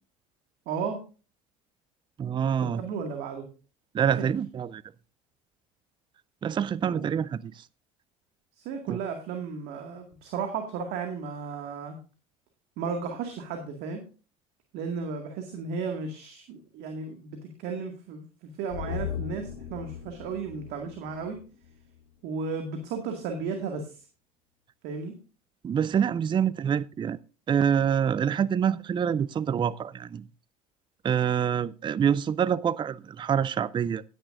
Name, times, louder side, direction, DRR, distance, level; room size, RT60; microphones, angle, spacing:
voice 1, 0.7-1.0 2.6-3.5 4.2-4.3 6.9-7.1 8.6-12.0 12.8-14.0 14.7-18.3 18.6-21.4 22.2-24.0 24.8-25.1, right 5 dB, 60° right, 2.1 m, -34 dB
voice 2, 2.2-2.8 3.9-4.8 6.4-7.5 8.9-9.0 25.6-27.2 27.5-30.2 31.0-34.0, right 8 dB, 25° right, 0.5 m, -26 dB
sound 1, 18.7-22.1 22.4-22.5, left 8 dB, 80° left, 2.4 m, -38 dB
16.0 x 9.9 x 2.6 m
hypercardioid pair, 70°, 18 cm